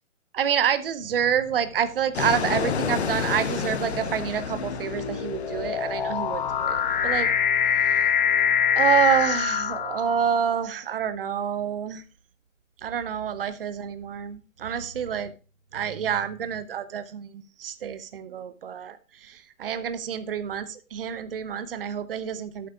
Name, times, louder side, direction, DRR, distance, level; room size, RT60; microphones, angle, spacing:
voice 1, 0.3-7.3 7.8-8.1 8.7-12.0 12.8-15.3 15.7-22.7, right 8 dB, 45° right, 0.8 m, -28 dB
sound 1, 1.1-1.5 2.3-10.5, left 7 dB, 35° left, 1.3 m, -25 dB
Fixed-wing aircraft airplane, 2.1-7.3, left 7 dB, 55° left, 0.9 m, -31 dB
13.0 x 8.3 x 2.3 m
hypercardioid pair, 150°, 41 cm